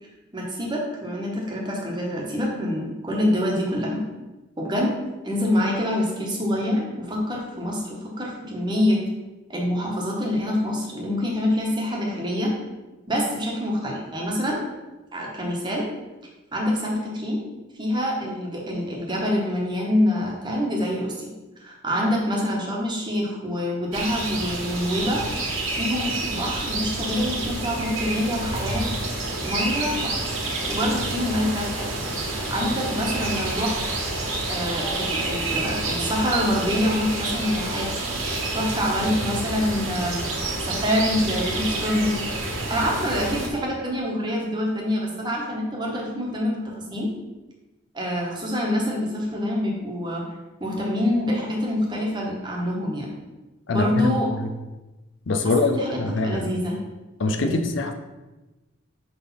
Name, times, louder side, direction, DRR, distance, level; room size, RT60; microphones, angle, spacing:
voice 1, 0.0-4.0 4.6-5.0 5.2-9.0 9.5-12.5 13.1-14.6 15.1-15.9 16.5-17.4 17.8-21.3 21.6-25.3 25.7-28.9 29.4-30.2 30.7-31.9 32.5-33.8 34.5-37.9 38.5-40.2 40.6-42.2 42.7-47.1 47.9-50.2 50.6-53.1 53.7-54.3 55.4-56.8 57.4-57.6, left 1 dB, 20° right, -2 dB, 1.2 m, -26 dB
sound 1, 23.9-43.5, right 2 dB, 80° right, 1.6 m, -28 dB
voice 2, 53.7-54.5 55.3-56.5 57.2-57.9, left 2 dB, 65° left, 6 dB, 0.5 m, -24 dB
5.9 x 3.5 x 5.6 m, 1.1 s
head